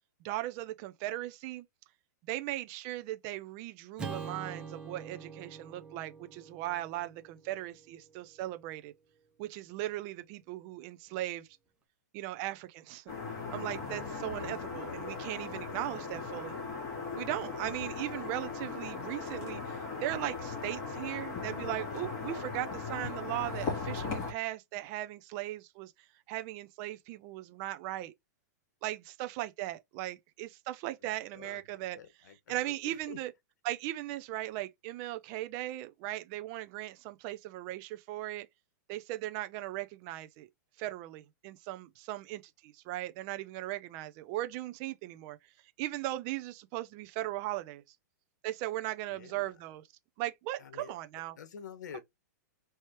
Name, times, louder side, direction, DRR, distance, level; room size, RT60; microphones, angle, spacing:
voice 1, 0.2-1.7 2.2-8.9 9.4-11.5 12.1-13.0 13.5-16.5 17.2-25.9 26.3-28.1 28.8-32.0 32.5-33.3 33.6-38.5 38.9-40.5 40.8-45.4 45.8-47.8 48.4-49.8 50.2-51.4 51.9-52.0, right 15 dB, 40° right, 0.6 m, -38 dB
Acoustic guitar / Strum, 4.0-8.4, right 5 dB, 10° right, 0.9 m, -45 dB
sound 1, 13.1-24.3, left 4 dB, 30° left, 2.5 m, -38 dB
voice 2, 31.0-33.2 49.1-49.5 50.6-50.9 51.4-52.0, left 7 dB, 75° left, 1.3 m, -49 dB
4.4 x 3.2 x 3.0 m
hypercardioid pair, 140°, 10 cm